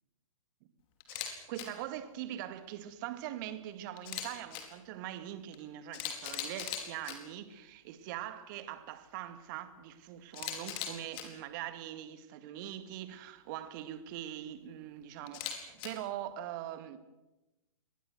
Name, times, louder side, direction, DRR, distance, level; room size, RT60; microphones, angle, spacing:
Camera, 1.0-1.3 1.5-1.6 4.0-4.6 5.5-5.6 5.9-7.1 10.3-11.2 15.3-15.9, left 10 dB, 30° left, 4.5 m, -39 dB
voice 1, 1.1-17.0, right 12 dB, 35° right, 2.0 m, -42 dB
25.0 x 20.5 x 7.9 m
figure-of-eight pair, 120°, 18 cm